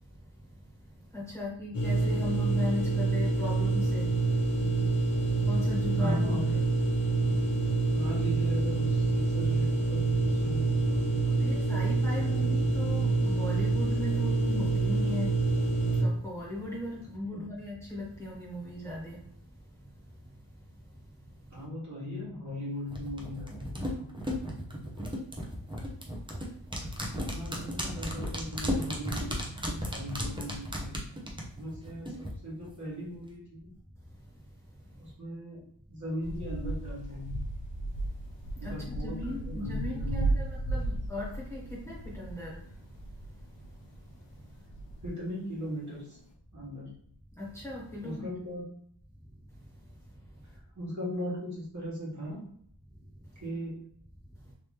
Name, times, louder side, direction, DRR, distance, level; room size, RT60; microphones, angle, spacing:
voice 1, 1.1-4.1 5.5-6.2 11.4-15.4 16.0-19.2 38.5-42.6 47.4-48.3, left 2 dB, 5° left, -7 dB, 1.4 m, -38 dB
sound 1, 1.7-16.0, right 3 dB, 45° left, 1.5 m, -27 dB
voice 2, 5.9-6.7 7.9-12.9 17.3-17.5 21.5-24.2 27.0-33.7 35.0-35.6 35.9-37.5 38.6-40.4 40.7-40.8 45.0-46.2 46.5-46.9 48.0-48.7 50.7-52.5 53.4-53.8, equal, 40° right, -6 dB, 1.5 m, -39 dB
sound 2, 22.9-32.3 32.6-32.7, equal, 10° right, 0.7 m, -35 dB
sound 3, 36.2-44.0 44.3-45.1 45.8-45.9 46.1-46.2, right 2 dB, 70° left, 0.8 m, -35 dB
3.4 x 2.9 x 3.1 m, 0.65 s
wide cardioid pair, 105°, 45 cm